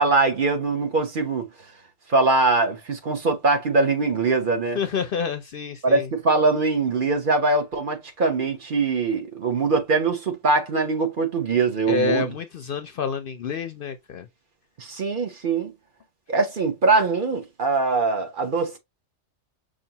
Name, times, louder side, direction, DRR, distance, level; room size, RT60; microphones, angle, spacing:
voice 1, 0.0-1.5 2.1-4.8 5.8-12.3 14.8-15.7 16.3-18.8, right 3 dB, 50° right, 1.0 m, -22 dB
voice 2, 4.7-6.1 11.9-14.3, left 5 dB, 60° left, 0.6 m, -28 dB
5.5 x 2.5 x 2.8 m
omnidirectional pair, 1.2 m